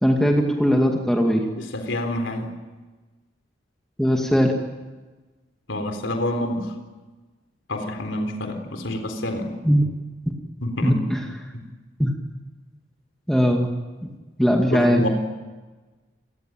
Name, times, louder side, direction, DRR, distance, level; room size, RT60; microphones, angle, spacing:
voice 1, 0.0-1.5 4.0-4.5 9.6-9.8 10.8-11.2 12.0-12.1 13.3-13.7 14.4-15.1, equal, 5° left, 1 dB, 2.2 m, -19 dB
voice 2, 1.6-2.5 5.7-6.7 7.7-9.5 10.6-11.0 11.5-11.6 14.7-15.1, left 1 dB, 85° left, 5 dB, 3.9 m, -27 dB
28.5 x 20.0 x 9.0 m, 1.3 s
head